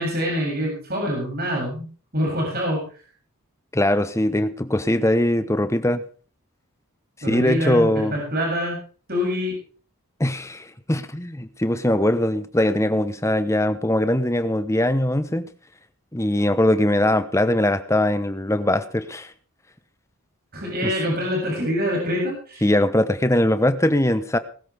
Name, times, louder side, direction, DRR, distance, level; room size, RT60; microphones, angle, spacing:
voice 1, 0.0-1.9 2.1-2.8 7.2-8.8 9.1-9.6 20.5-22.6, equal, 45° right, -2 dB, 7.7 m, -25 dB
voice 2, 3.7-6.0 7.3-8.2 10.2-15.5 16.1-19.3 20.8-20.9 22.6-24.4, left 1 dB, 15° left, 12 dB, 1.0 m, -21 dB
20.5 x 13.5 x 3.5 m, 0.40 s
head